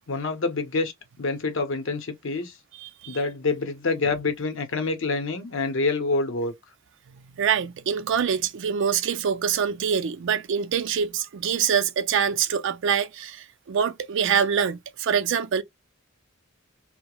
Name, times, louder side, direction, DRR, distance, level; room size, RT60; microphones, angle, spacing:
voice 1, 0.1-2.5 3.1-6.5, left 3 dB, 65° left, 0.7 m, -26 dB
voice 2, 2.8-3.2 7.4-15.6, right 7 dB, 65° right, 0.4 m, -25 dB
2.3 x 2.0 x 2.9 m
head